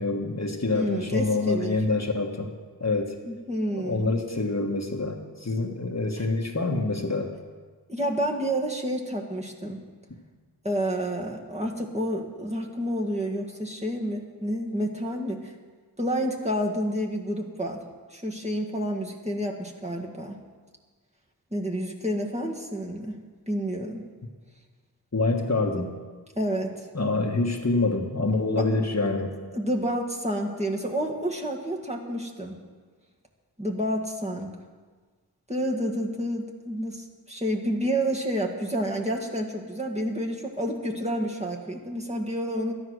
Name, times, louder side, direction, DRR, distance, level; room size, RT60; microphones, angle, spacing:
voice 1, 0.0-2.5 2.8-3.1 3.7-7.3 25.1-25.9 26.9-29.3, left 3 dB, 40° left, 2 dB, 1.4 m, -26 dB
voice 2, 0.7-2.0 3.2-4.1 6.2-6.3 7.9-9.8 10.6-15.5 16.0-17.8 18.1-20.4 21.5-23.2 23.5-24.0 26.4-26.9 28.6-28.7 29.5-32.6 33.6-34.5 35.5-42.7, equal, 15° right, -1 dB, 1.8 m, -29 dB
13.0 x 9.9 x 6.3 m, 1.5 s
wide cardioid pair, 50°, 42 cm